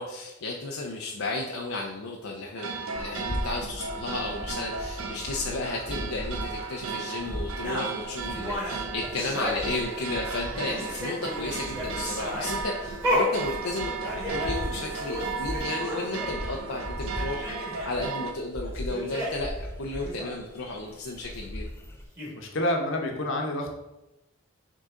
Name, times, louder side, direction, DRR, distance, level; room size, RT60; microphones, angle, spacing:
voice 1, 0.0-21.6, left 2 dB, 80° left, -1 dB, 0.7 m, -33 dB
sound 1, 2.6-18.3, right 4 dB, 75° right, 0.7 m, -35 dB
sound 2, 3.0-22.1, equal, 10° left, 0.5 m, -39 dB
sound 3, 7.6-10.2 10.5-16.4 16.7-16.8 17.0-17.9 18.6-19.5 19.9-20.3 21.8-21.9 22.2-22.3, left 1 dB, 15° right, 1.9 m, -33 dB
voice 2, 22.4-23.7, left 1 dB, 65° left, 1 dB, 1.1 m, -28 dB
6.5 x 3.9 x 3.7 m, 0.97 s
head